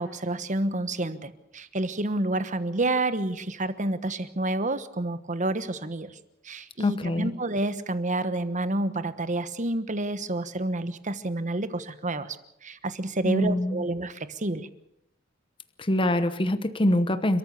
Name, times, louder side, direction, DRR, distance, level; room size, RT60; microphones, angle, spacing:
voice 1, 0.0-6.2 6.4-12.4 12.6-14.7, right 2 dB, 40° right, 12 dB, 1.2 m, -29 dB
voice 2, 6.8-7.3 13.2-13.9 15.8-17.4, left 1 dB, 25° left, 11 dB, 1.0 m, -24 dB
29.5 x 14.0 x 7.0 m, 0.80 s
head